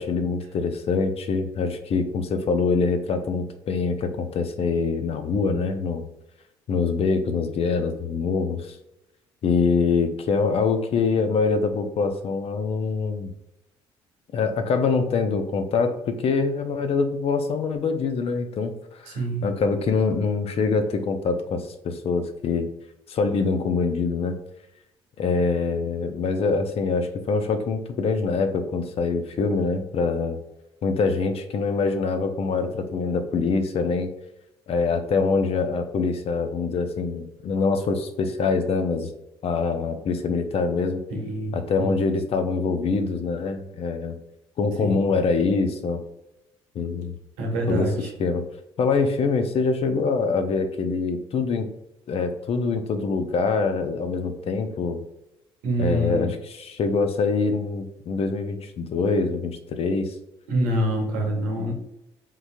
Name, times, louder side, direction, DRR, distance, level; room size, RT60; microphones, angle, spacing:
voice 1, 0.0-6.0 6.7-8.7 9.4-13.3 14.3-18.7 19.0-22.7 23.1-24.4 25.2-30.4 30.8-34.1 34.7-39.1 39.4-41.0 41.5-44.2 44.6-46.0 46.7-47.1 47.7-47.9 48.2-48.4 48.8-51.7 52.1-55.0 55.8-60.1, left 4 dB, 55° left, 7 dB, 0.5 m, -24 dB
voice 2, 19.1-19.4 41.1-41.9 44.8-45.0 47.4-48.1 55.6-56.3 60.5-61.7, right 1 dB, 90° right, 1 dB, 0.9 m, -26 dB
3.6 x 2.9 x 2.6 m, 0.86 s
supercardioid pair, 60°, 12 cm